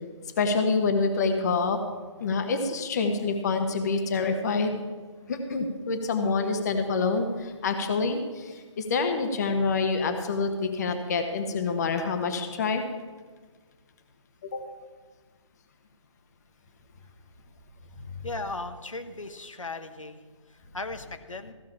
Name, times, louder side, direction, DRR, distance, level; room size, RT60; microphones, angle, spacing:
voice 1, 0.4-1.8 2.2-4.8 5.3-12.8 14.4-14.6, left 4 dB, 35° left, 6 dB, 1.2 m, -27 dB
voice 2, 18.2-20.2 20.5-21.5, left 2 dB, 85° left, 8 dB, 1.2 m, -37 dB
15.5 x 6.4 x 7.2 m, 1.4 s
figure-of-eight pair, 150°, 16 cm